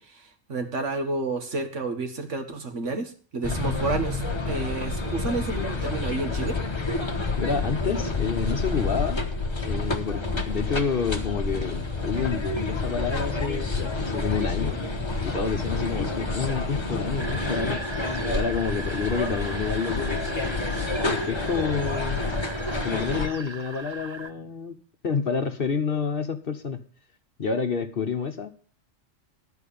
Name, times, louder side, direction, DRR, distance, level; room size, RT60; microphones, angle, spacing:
voice 1, 0.0-6.6, right 3 dB, 65° right, 6 dB, 1.8 m, -30 dB
sound 1, 3.4-23.3, left 3 dB, 20° left, 1.2 m, -28 dB
voice 2, 7.4-9.2 9.7-14.8 15.2-17.8 18.3-20.6 21.0-22.2 22.8-24.8 25.0-26.8 27.4-28.5, left 6 dB, 50° left, 7 dB, 1.1 m, -29 dB
sound 2, 17.2-24.3, right 3 dB, 25° right, 0.7 m, -39 dB
12.0 x 4.7 x 8.4 m, 0.42 s
omnidirectional pair, 1.3 m